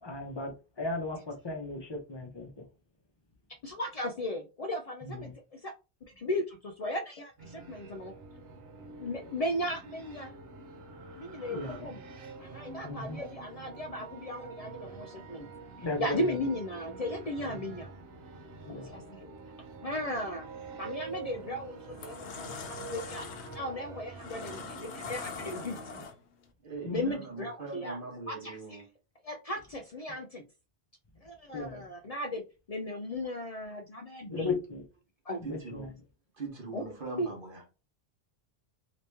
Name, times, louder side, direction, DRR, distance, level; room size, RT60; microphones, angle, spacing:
voice 1, 0.0-2.6 5.0-5.3 11.4-11.9 12.8-13.2 15.8-16.5 17.4-17.6 18.6-18.9 26.8-27.1 31.5-31.9 34.3-34.8 35.4-35.9, left 2 dB, 25° left, 0.8 m, -36 dB
voice 2, 3.6-5.7 6.2-8.1 9.0-10.3 11.2-12.0 12.4-15.5 15.8-17.9 18.9-19.3 19.8-20.5 20.8-23.3 23.5-26.0 26.9-28.0 28.3-28.6 29.2-30.4 31.2-32.4 32.7-34.6 35.3-35.4 36.7-36.8 37.2-37.3, left 1 dB, 50° left, 0.4 m, -36 dB
sound 1, 7.4-26.1, right 4 dB, 70° right, 1.0 m, -46 dB
sound 2, 21.1-21.3 21.8-26.4, left 6 dB, 80° left, 0.9 m, -43 dB
voice 3, 26.6-28.9 34.3-34.5 35.4-35.9 36.3-37.8, right 3 dB, 55° right, 1.2 m, -42 dB
2.9 x 2.9 x 3.3 m
omnidirectional pair, 1.1 m